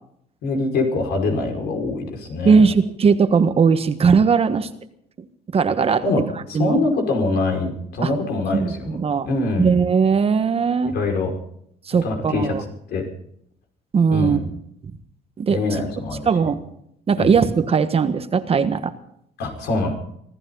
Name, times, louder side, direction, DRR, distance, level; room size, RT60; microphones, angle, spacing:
voice 1, 0.4-2.7 6.0-6.2 6.5-9.0 9.2-9.8 10.8-11.3 12.0-12.5 12.9-13.1 14.1-14.5 15.5-16.5 17.2-17.3 19.4-19.9, left 3 dB, 75° left, 3 dB, 5.5 m, -24 dB
voice 2, 2.4-4.7 5.5-6.0 6.5-6.8 8.0-8.1 8.5-9.3 9.6-10.9 11.9-12.6 13.9-14.4 15.4-15.6 16.3-16.6 17.1-18.9, right 5 dB, 35° right, 10 dB, 1.4 m, -18 dB
25.0 x 14.5 x 4.0 m, 0.70 s
cardioid pair, 110°, 17 cm